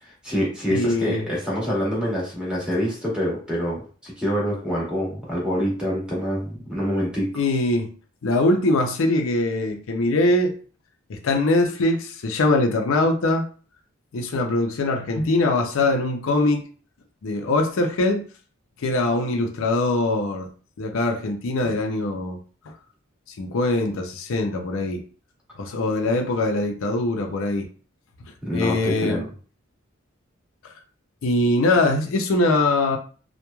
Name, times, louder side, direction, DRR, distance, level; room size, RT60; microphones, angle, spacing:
voice 1, 0.0-7.3 28.4-29.3, equal, 5° right, 1.0 m, -26 dB
voice 2, 0.7-1.3 7.3-7.9 8.2-10.5 11.1-13.4 14.1-16.6 17.2-18.2 18.8-20.5 20.8-22.4 23.4-25.0 25.6-27.7 28.5-29.2 31.2-33.0, left 2 dB, 90° left, 0.5 m, -22 dB
2.9 x 2.1 x 2.2 m
head